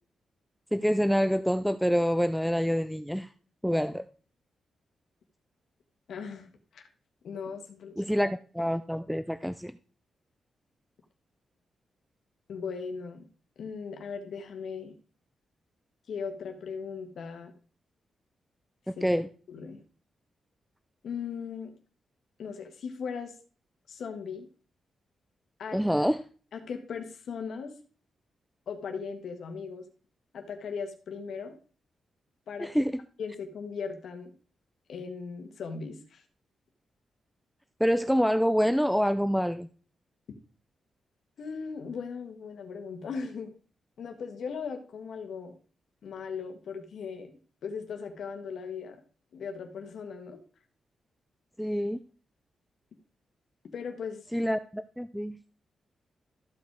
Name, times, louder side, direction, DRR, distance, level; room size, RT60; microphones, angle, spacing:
voice 1, 0.7-3.3 3.6-4.1 8.0-9.7 18.9-19.3 25.7-26.2 32.6-32.9 37.8-39.7 51.6-52.0 54.3-55.4, equal, ahead, 11 dB, 0.4 m, -26 dB
voice 2, 6.1-6.5 6.7-6.8 7.2-8.0 12.5-13.3 13.6-14.9 16.1-17.5 19.0-19.1 19.5-19.8 21.0-21.7 22.4-23.3 23.9-24.4 25.6-25.8 26.5-27.7 28.7-29.8 30.3-31.6 32.5-32.7 33.2-34.3 34.9-36.2 41.4-43.5 44.0-45.5 46.0-47.3 47.6-49.0 49.3-50.4 53.7-54.2, left 5 dB, 75° left, 5 dB, 1.5 m, -38 dB
13.5 x 5.1 x 4.7 m, 0.40 s
cardioid pair, 115°, 0 cm